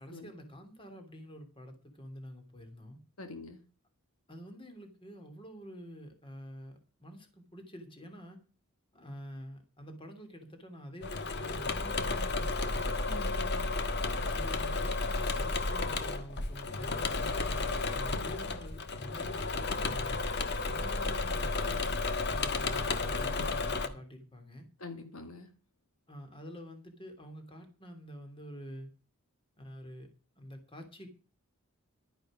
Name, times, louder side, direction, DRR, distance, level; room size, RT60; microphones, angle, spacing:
voice 1, 0.0-3.0 4.3-8.4 8.9-12.9 14.3-20.2 20.7-24.7 26.1-28.9 29.6-30.1 30.4-31.1, equal, 25° left, 6 dB, 3.0 m, -48 dB
voice 2, 3.2-3.6 13.1-13.7 24.8-25.5, left 3 dB, 75° left, 6 dB, 2.1 m, -45 dB
Engine / Mechanisms, 11.0-23.9, left 3 dB, 50° left, 1.4 m, -32 dB
12.5 x 10.5 x 5.1 m, 0.37 s
head